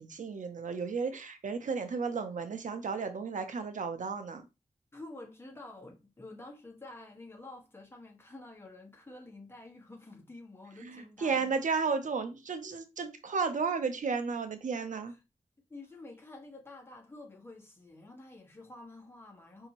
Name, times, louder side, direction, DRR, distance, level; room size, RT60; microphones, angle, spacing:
voice 1, 0.0-4.4 10.8-15.1, right 5 dB, 75° right, 0.6 m, -33 dB
voice 2, 4.9-11.6 15.1-15.2 15.7-19.7, left 2 dB, 20° left, 1.1 m, -49 dB
5.1 x 2.7 x 2.9 m
wide cardioid pair, 110°, 13 cm